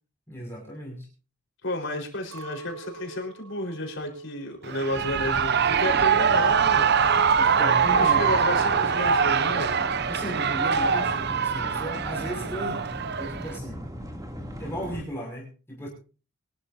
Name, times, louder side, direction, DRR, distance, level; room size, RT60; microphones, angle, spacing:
voice 1, 0.3-1.1 7.4-8.3 10.1-12.8 13.2-13.8 14.6-15.9, equal, 10° left, -2 dB, 6.2 m, -35 dB
voice 2, 1.6-7.0 8.0-9.8, left 1 dB, 55° left, 2 dB, 4.6 m, -32 dB
Chink clink, 2.3-6.7 6.9-7.7, right 5 dB, 70° right, 1.6 m, -46 dB
Shout / Cheering, 4.6-13.6, right 6 dB, 50° right, 0.7 m, -23 dB
sound 1, 4.9-15.0, equal, 15° right, 2.7 m, -38 dB
23.5 x 13.0 x 2.8 m, 0.35 s
head